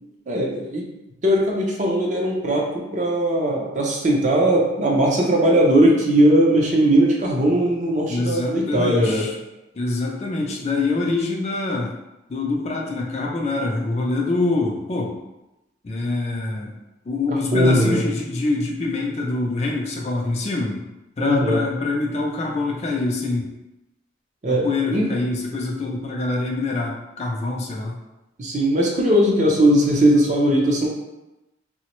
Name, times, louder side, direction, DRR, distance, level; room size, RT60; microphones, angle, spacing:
voice 1, 0.3-0.9 1.2-9.3 17.3-18.0 21.2-21.6 24.4-25.1 28.4-30.9, right 1 dB, 40° right, -2 dB, 0.5 m, -19 dB
voice 2, 8.1-9.3 9.7-11.9 12.3-15.1 15.8-16.7 17.1-20.8 21.2-23.5 24.5-28.0, left 3 dB, 35° left, -1 dB, 0.3 m, -25 dB
3.1 x 2.0 x 2.9 m, 0.96 s
head